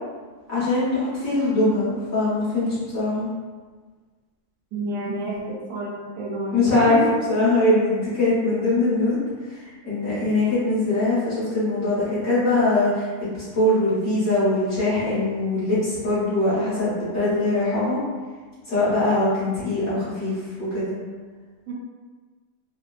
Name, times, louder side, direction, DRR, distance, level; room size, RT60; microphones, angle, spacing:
voice 1, 0.5-3.3 6.5-7.0 7.3-9.2 9.5-18.0 18.7-20.9, left 2 dB, 60° left, -12 dB, 1.9 m, -22 dB
voice 2, 4.7-7.0 21.7-21.8, right 2 dB, 75° right, -4 dB, 1.0 m, -30 dB
3.8 x 2.1 x 2.4 m, 1.4 s
omnidirectional pair, 1.7 m